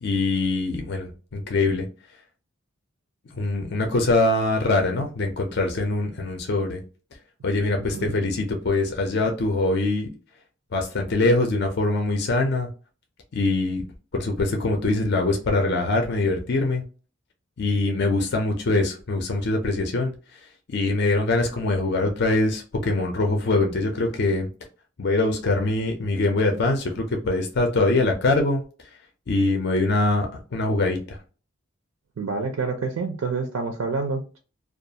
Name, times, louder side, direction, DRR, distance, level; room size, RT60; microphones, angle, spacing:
voice 1, 0.0-1.9 3.4-6.8 7.4-10.1 10.7-12.7 13.3-13.8 14.1-16.8 17.6-20.1 20.7-24.5 25.0-28.6 29.3-31.2, left 2 dB, 55° left, 3 dB, 0.4 m, -23 dB
voice 2, 7.8-8.1 32.2-34.4, right 4 dB, 80° right, 5 dB, 0.4 m, -28 dB
2.3 x 2.3 x 2.7 m, 0.36 s
head